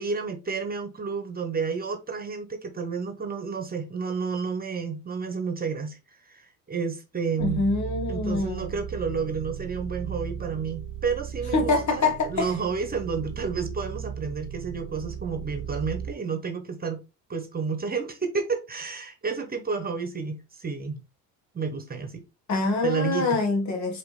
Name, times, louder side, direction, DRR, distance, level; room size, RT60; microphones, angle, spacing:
voice 1, 0.0-7.6 8.1-17.0 17.3-21.0 21.5-22.2 22.8-23.4, right 5 dB, 25° right, 1.1 m, -31 dB
voice 2, 7.4-8.7 11.5-12.5 22.5-24.0, left 3 dB, 55° left, 1.6 m, -25 dB
sound 1, 7.4-16.1, right 9 dB, 70° right, 0.7 m, -36 dB
4.9 x 3.1 x 3.3 m
supercardioid pair, 90°, 34 cm